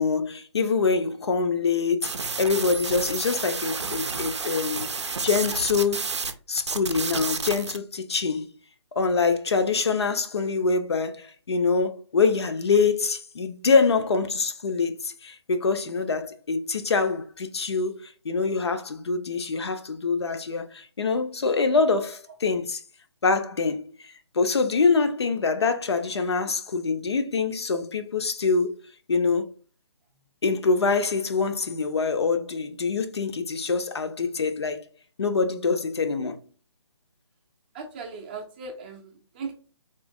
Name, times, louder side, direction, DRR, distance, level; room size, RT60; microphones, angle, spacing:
voice 1, 0.0-4.9 5.2-6.1 6.5-8.5 9.0-22.8 23.2-28.8 29.1-29.5 30.4-34.8 35.2-36.4, left 4 dB, 65° left, 0.6 m, -25 dB
sound 1, 2.0-6.3 6.6-7.8, right 4 dB, 75° right, 0.5 m, -31 dB
voice 2, 37.7-39.5, right 4 dB, 20° right, 0.5 m, -38 dB
3.6 x 2.7 x 2.6 m
figure-of-eight pair, 145°, 15 cm